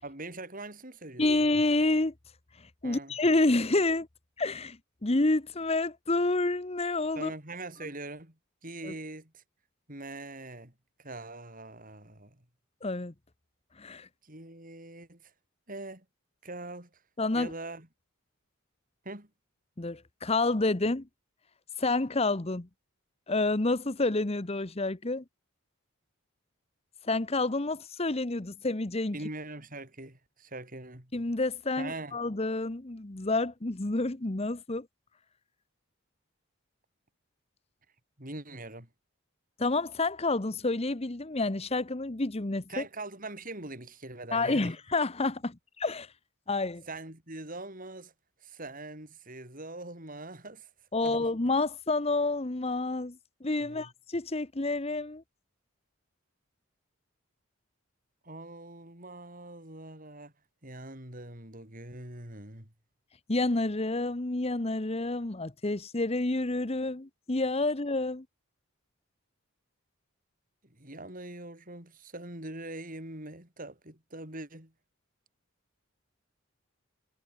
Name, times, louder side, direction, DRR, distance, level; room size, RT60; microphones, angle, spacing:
voice 1, 0.0-1.3 2.8-3.1 7.2-8.3 8.6-9.4 9.9-10.7 11.0-12.4 14.2-15.3 15.7-16.0 16.4-16.9 17.3-17.9 19.0-19.3 29.1-31.1 31.8-32.2 38.2-38.9 42.7-44.7 46.9-48.1 48.4-50.7 51.0-51.3 53.6-53.9 58.2-60.3 60.6-62.7 70.8-74.7, right 2 dB, 40° right, 6.2 m, -42 dB
voice 2, 1.2-2.1 2.6-4.1 4.4-7.3 8.8-8.9 12.8-13.1 13.8-14.1 17.2-17.5 19.8-21.1 21.8-22.7 23.3-25.2 27.0-29.2 31.1-34.9 39.6-42.8 44.3-46.1 46.5-46.8 50.9-55.2 63.3-68.2, left 2 dB, 30° left, 1.0 m, -29 dB
head